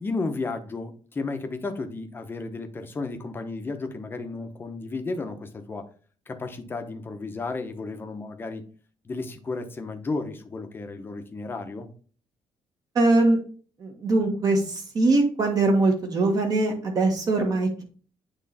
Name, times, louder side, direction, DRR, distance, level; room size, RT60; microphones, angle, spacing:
voice 1, 0.0-5.8 6.3-8.6 9.0-11.9, left 3 dB, 20° left, 6 dB, 0.9 m, -33 dB
voice 2, 12.9-13.4 13.8-17.8, right 2 dB, 40° right, 3 dB, 1.4 m, -22 dB
8.6 x 3.2 x 4.1 m, 0.41 s
cardioid pair, 155°, 10 cm